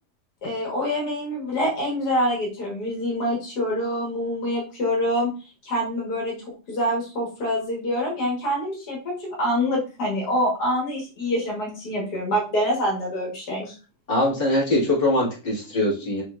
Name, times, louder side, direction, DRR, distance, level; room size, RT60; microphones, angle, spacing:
voice 1, 0.4-5.3 5.6-6.4 6.7-13.7, equal, 80° left, -3 dB, 2.0 m, -26 dB
voice 2, 14.1-16.2, left 1 dB, 35° left, -6 dB, 2.2 m, -22 dB
6.3 x 3.1 x 2.4 m, 0.34 s
omnidirectional pair, 1.7 m